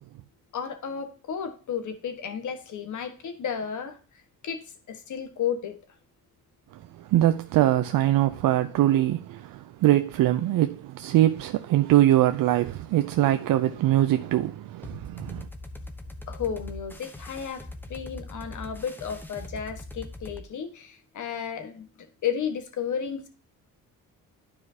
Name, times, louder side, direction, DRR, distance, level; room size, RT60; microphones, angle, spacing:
voice 1, 0.5-4.0 4.4-5.8 16.3-21.9 22.2-23.3, left 7 dB, 60° left, 1.5 m, -33 dB
voice 2, 6.7-15.5, right 13 dB, 75° right, 0.6 m, -23 dB
sound 1, 14.8-20.4, left 2 dB, 5° left, 0.9 m, -41 dB
12.0 x 4.8 x 2.8 m
cardioid pair, 110°, 34 cm